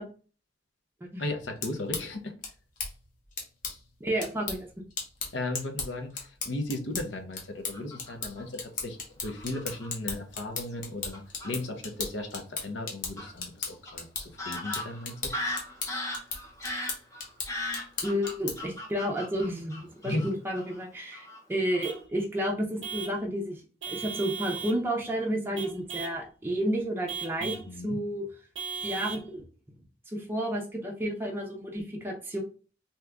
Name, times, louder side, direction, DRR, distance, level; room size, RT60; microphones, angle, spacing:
voice 1, 1.2-2.3 5.3-15.5 20.0-20.3 27.4-28.0, left 2 dB, 70° left, 5 dB, 0.7 m, -36 dB
sound 1, 1.4-18.8, left 4 dB, 45° left, 0.9 m, -38 dB
voice 2, 4.0-4.7 18.0-23.6 23.9-27.5 27.8-28.3 28.8-29.4 30.1-32.4, equal, 10° right, 0 dB, 0.5 m, -31 dB
Fowl / Bird vocalization bird call bird song, 7.7-8.4 9.2-9.9 10.7-10.8 11.1-11.5 13.2-13.3 13.8-13.9 14.4-20.3 20.6-20.8 21.1-21.4 21.7-22.0, left 1 dB, 15° left, 0.8 m, -37 dB
Vehicle horn car horn honking / Truck, 21.8-22.1 22.8-23.2 23.8-24.8 25.6-26.2 27.1-27.7 28.6-29.3, right 6 dB, 80° right, 0.6 m, -37 dB
2.8 x 2.3 x 3.4 m, 0.37 s
head